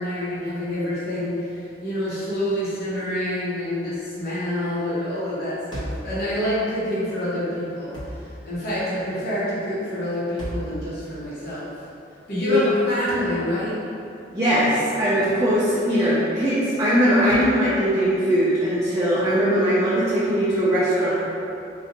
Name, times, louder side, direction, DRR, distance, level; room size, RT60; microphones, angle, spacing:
voice 1, 0.0-11.7 12.3-13.8, equal, 60° left, -10 dB, 0.8 m, -27 dB
sound 1, 5.7-6.1 7.9-8.3 10.4-10.8 13.1-13.3 15.2-15.5 17.3-17.6, equal, 25° left, 0.6 m, -34 dB
voice 2, 14.3-21.1, equal, 15° right, -10 dB, 0.4 m, -20 dB
3.7 x 2.1 x 2.8 m, 2.7 s
head